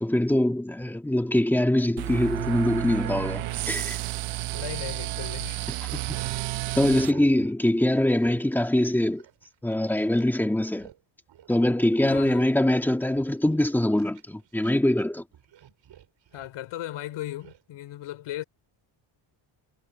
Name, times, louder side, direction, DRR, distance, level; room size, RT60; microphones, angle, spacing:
voice 1, 0.0-4.0 5.9-6.2 6.7-9.2 9.6-10.9 11.5-15.2, left 1 dB, 5° left, 1.6 m, -23 dB
sound 1, 2.0-7.1, right 16 dB, 80° right, 0.9 m, -31 dB
sound 2, 2.3-5.4 5.8-6.4 7.0-7.6 7.9-10.3 10.6-11.0 11.3-11.5 11.9-12.5 12.9-15.0 15.3-16.6 17.4-17.6, right 10 dB, 65° right, 5.1 m, -50 dB
voice 2, 4.5-5.7 12.0-12.5 16.3-18.4, left 13 dB, 85° left, 3.5 m, -37 dB
cardioid pair, 145°, 49 cm